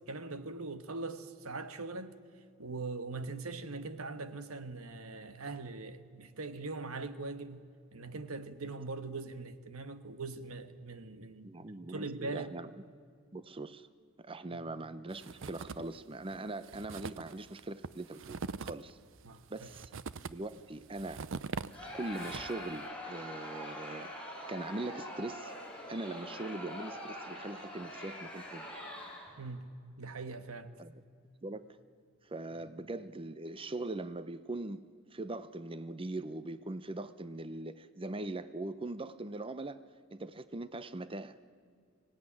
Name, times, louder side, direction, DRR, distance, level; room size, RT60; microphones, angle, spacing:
voice 1, 0.1-2.2 2.6-7.6 7.9-12.5 14.5-14.6 19.2-19.7 29.4-29.7 30.0-30.7, right 3 dB, 90° right, 1.3 m, -41 dB
voice 2, 11.4-12.7 13.3-13.9 14.2-19.0 19.5-19.9 20.3-21.3 21.9-24.1 24.5-25.6 25.9-28.7 30.8-31.0 31.4-31.8 32.2-39.8 40.1-41.4, right 2 dB, 25° right, 0.7 m, -41 dB
sound 1, 15.1-16.0 16.3-16.4 16.6-22.7, right 4 dB, 65° right, 0.6 m, -43 dB
Crowd, 21.7-29.4, left 1 dB, 5° left, 7.3 m, -44 dB
25.0 x 17.0 x 9.8 m
head